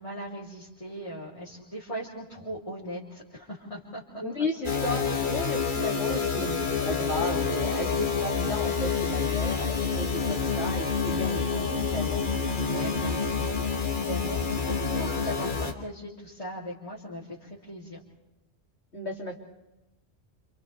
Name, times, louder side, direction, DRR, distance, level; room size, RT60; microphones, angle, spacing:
voice 1, 0.0-4.2 6.1-6.3 11.1-11.4 12.6-18.0, equal, 30° left, -7 dB, 3.6 m, -39 dB
voice 2, 4.2-12.2 18.9-19.3, left 1 dB, 85° left, 0 dB, 3.3 m, -34 dB
sound 1, 4.6-15.7, left 5 dB, 50° left, 1.7 m, -28 dB
29.5 x 28.0 x 3.5 m, 0.98 s
omnidirectional pair, 1.1 m